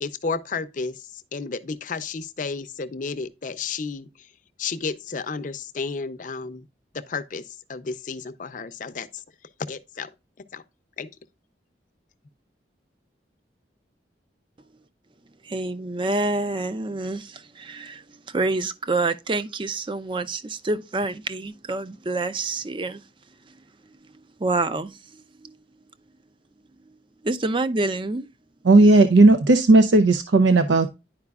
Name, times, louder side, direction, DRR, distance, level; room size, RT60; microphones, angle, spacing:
voice 1, 0.0-4.3 4.6-6.6 6.9-9.2 9.7-10.1 10.4-10.6 11.0-11.1, left 4 dB, 45° left, 0.5 m, -32 dB
voice 2, 15.4-23.0 24.4-25.5 27.2-28.3, right 2 dB, 25° right, 0.5 m, -27 dB
voice 3, 28.6-30.9, right 2 dB, 85° right, 0.5 m, -15 dB
10.5 x 4.9 x 2.3 m
head